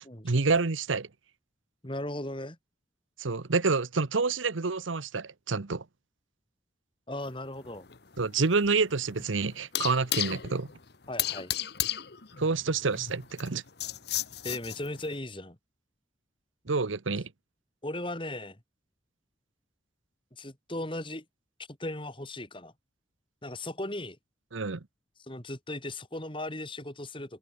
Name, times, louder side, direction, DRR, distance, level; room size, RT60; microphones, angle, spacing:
voice 1, 0.2-1.1 3.2-5.8 8.2-10.7 12.4-13.6 16.7-17.3 24.5-24.8, right 4 dB, 85° right, 1.0 m, -28 dB
voice 2, 1.8-2.6 7.1-7.9 11.1-11.5 14.4-15.6 17.8-18.6 20.3-21.2 21.8-22.7 23.4-24.2 25.3-27.4, left 1 dB, 25° left, 3.5 m, -37 dB
sound 1, 7.3-15.1, left 12 dB, 55° left, 1.1 m, -35 dB
open air
head